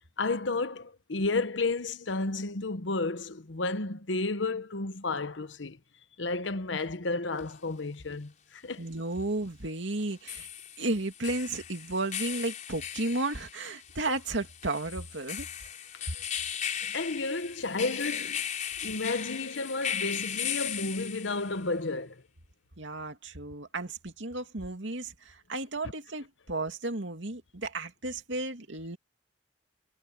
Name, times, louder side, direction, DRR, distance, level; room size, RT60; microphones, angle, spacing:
voice 1, 0.2-5.8 6.2-8.9 16.7-18.4 18.8-22.2, left 3 dB, 80° left, 1.1 m, -32 dB
sound 1, 7.4-7.5 10.0-21.6, left 9 dB, 40° left, 5.8 m, -37 dB
voice 2, 8.8-10.5 10.8-15.7 22.8-29.0, right 2 dB, 80° right, 2.5 m, -33 dB
head